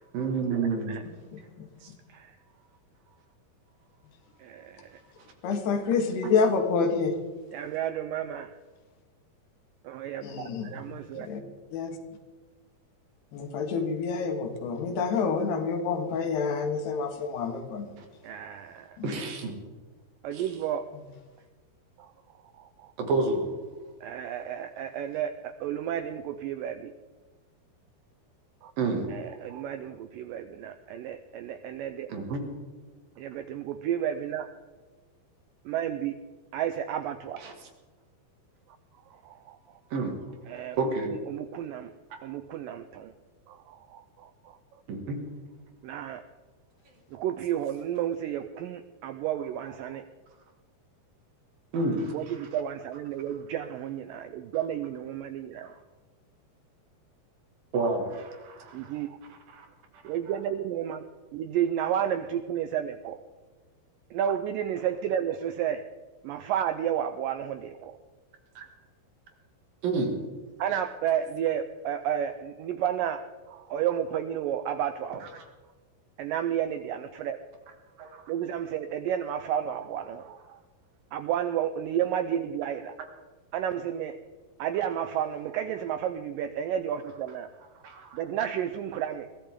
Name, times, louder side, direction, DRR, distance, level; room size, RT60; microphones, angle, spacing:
voice 1, 0.1-0.9 6.2-6.3 18.0-18.1 19.0-19.6 20.3-20.5 23.0-23.5 28.8-29.1 32.1-32.4 37.4-37.5 39.9-40.2 40.8-41.1 44.9-45.2 51.7-52.5 55.6-55.7 57.7-58.7 59.5-59.7 68.6-68.7 69.8-70.1 75.2-75.3 78.0-78.2 87.8-88.2, right 3 dB, 65° right, 3 dB, 3.8 m, -29 dB
voice 2, 1.3-1.7 5.4-7.1 10.2-11.4 11.7-11.9 13.3-17.9 19.0-19.1, left 5 dB, 85° left, 4 dB, 3.8 m, -28 dB
voice 3, 4.4-5.0 7.5-8.5 9.8-11.3 18.2-19.0 20.2-20.9 22.0-22.1 22.6-22.9 24.0-26.9 28.6-28.7 29.1-32.1 33.2-34.5 35.7-36.2 36.5-37.4 39.2-39.6 40.5-40.8 41.3-41.9 42.2-43.1 43.5-44.6 45.8-46.2 47.1-50.0 52.1-55.7 58.9-59.1 60.0-61.0 61.3-63.2 64.1-65.8 66.2-68.0 70.6-75.2 76.2-77.4 78.3-80.6 81.1-83.0 83.5-84.2 84.6-87.5 88.1-89.3, right 10 dB, 85° right, 10 dB, 2.0 m, -31 dB
22.0 x 15.0 x 3.7 m, 1.3 s
omnidirectional pair, 4.6 m